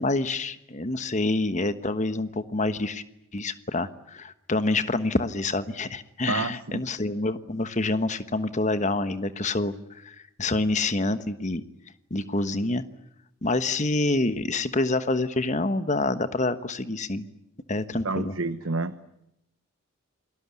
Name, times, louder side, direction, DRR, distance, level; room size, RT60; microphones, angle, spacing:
voice 1, 0.0-3.0 3.3-11.6 12.1-12.8 13.4-17.3 17.7-18.3, left 2 dB, 35° left, 12 dB, 1.3 m, -27 dB
voice 2, 6.3-6.8 18.0-18.9, right 3 dB, 70° right, 10 dB, 1.1 m, -29 dB
28.5 x 19.5 x 9.7 m, 0.82 s
head